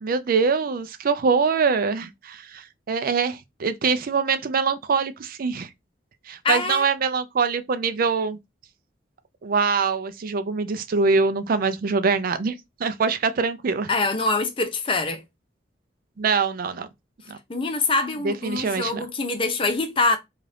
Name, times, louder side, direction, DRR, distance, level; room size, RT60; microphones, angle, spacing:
voice 1, 0.0-5.7 6.3-8.4 9.4-12.5 12.8-13.9 16.2-16.9 17.3-17.4 18.2-19.0, right 5 dB, 50° right, 0.4 m, -24 dB
voice 2, 6.4-6.9 13.9-15.2 17.5-20.2, left 3 dB, 30° left, 0.6 m, -24 dB
2.6 x 2.4 x 3.3 m
head